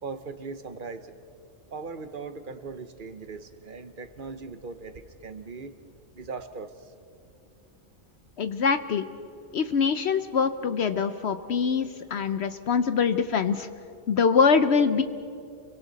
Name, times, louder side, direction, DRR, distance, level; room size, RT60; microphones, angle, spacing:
voice 1, 0.0-1.1 1.7-5.7 6.1-6.9, right 4 dB, 45° right, 10 dB, 1.2 m, -39 dB
voice 2, 8.4-9.1 9.5-13.7 14.1-15.0, left 5 dB, 65° left, 10 dB, 0.9 m, -24 dB
29.0 x 23.5 x 4.1 m, 2.6 s
omnidirectional pair, 1.3 m